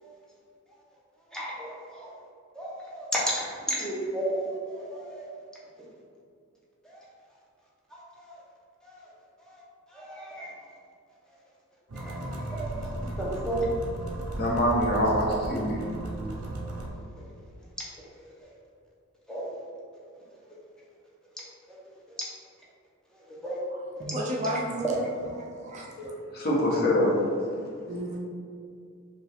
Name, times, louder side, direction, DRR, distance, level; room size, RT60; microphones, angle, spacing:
voice 1, 1.3-2.1 2.5-5.3 6.8-7.0 7.9-8.3 8.8-9.1 9.4-9.6 9.9-10.5 11.9-13.7 14.3-14.4 16.3-16.4 18.1-18.5 19.3-19.5 23.3-23.6, right 1 dB, 5° left, -6 dB, 0.7 m, -34 dB
sound 1, 11.9-16.9, right 1 dB, 75° right, 0.6 m, -35 dB
voice 2, 14.4-15.8 25.7-27.2, equal, 45° left, -5 dB, 0.9 m, -25 dB
voice 3, 24.0-25.1 25.4-25.9 27.9-28.2, right 1 dB, 30° right, -2 dB, 0.4 m, -32 dB
4.9 x 2.3 x 3.4 m, 2.3 s
head